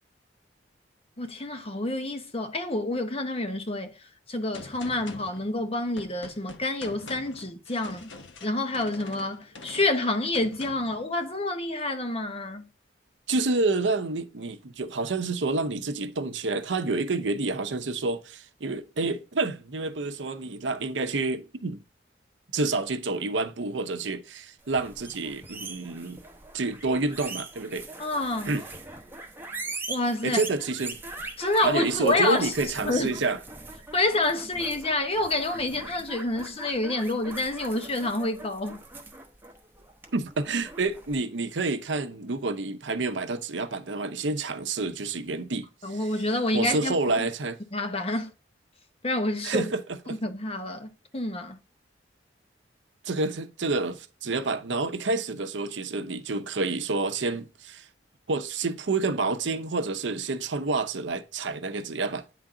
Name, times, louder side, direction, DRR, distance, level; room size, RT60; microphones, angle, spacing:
voice 1, 1.2-8.1 8.4-12.7 28.0-28.6 29.9-30.4 31.4-32.5 32.8-33.2 33.9-38.8 45.8-47.3 47.7-48.3 49.0-49.7 50.2-51.6, left 2 dB, 35° left, 1.0 m, -28 dB
Gunshot gunfire, 4.5-11.0, left 3 dB, 85° left, 1.0 m, -45 dB
voice 2, 13.3-21.8 22.5-26.2 26.5-27.8 28.5-28.6 30.2-31.0 31.6-33.4 40.1-46.0 46.5-47.6 49.4-50.2 53.0-57.8 58.3-62.2, right 3 dB, 85° right, 0.7 m, -28 dB
sound 1, 24.6-41.2, right 3 dB, 10° right, 0.9 m, -41 dB
9.3 x 3.9 x 3.7 m
head